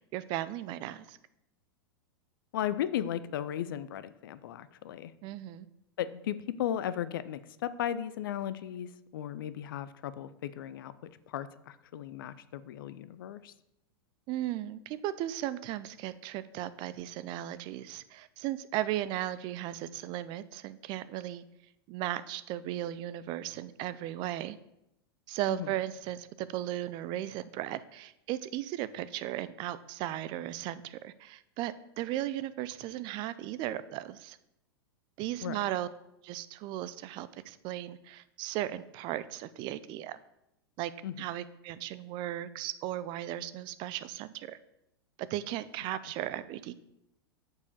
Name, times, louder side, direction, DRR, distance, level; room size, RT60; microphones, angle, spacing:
voice 1, 0.1-1.2 5.2-5.7 14.3-21.4 21.9-24.6 25.3-34.4 35.2-35.9 36.2-40.2 40.8-40.9 41.2-44.6 45.3-46.7, right 13 dB, 35° right, 16 dB, 0.5 m, -36 dB
voice 2, 2.5-5.1 6.0-10.9 11.3-13.5 25.5-25.7 35.4-35.6 41.0-41.1, left 10 dB, 60° left, 15 dB, 0.5 m, -36 dB
6.7 x 4.8 x 6.6 m, 0.83 s
figure-of-eight pair, 95°, 13 cm